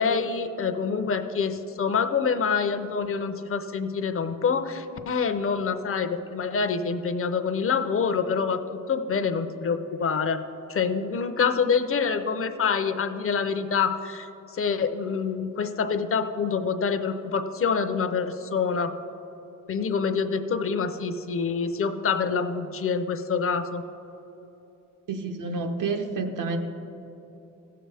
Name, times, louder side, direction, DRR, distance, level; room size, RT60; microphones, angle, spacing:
voice 1, 0.0-8.6 8.9-10.4 10.7-14.3 14.5-18.9 19.7-23.8, left 5 dB, 45° left, 9 dB, 0.6 m, -26 dB
voice 2, 25.1-26.6, right 4 dB, 80° right, 4 dB, 0.9 m, -29 dB
16.0 x 7.7 x 3.4 m, 3.0 s
wide cardioid pair, 145°, 31 cm